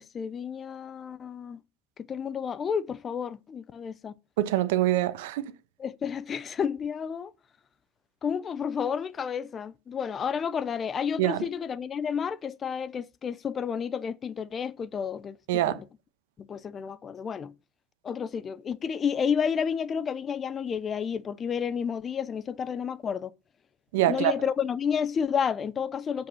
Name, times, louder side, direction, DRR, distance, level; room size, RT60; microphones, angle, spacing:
voice 1, 0.0-1.6 2.0-4.1 5.8-7.3 8.2-15.8 16.4-17.5 18.0-23.3 24.1-26.3, left 7 dB, 25° left, 0.5 m, -31 dB
voice 2, 4.4-5.5 11.2-11.4 15.5-15.8 23.9-24.3, right 14 dB, 90° right, 1.0 m, -24 dB
7.7 x 5.2 x 5.4 m
supercardioid pair, 145°, 0 cm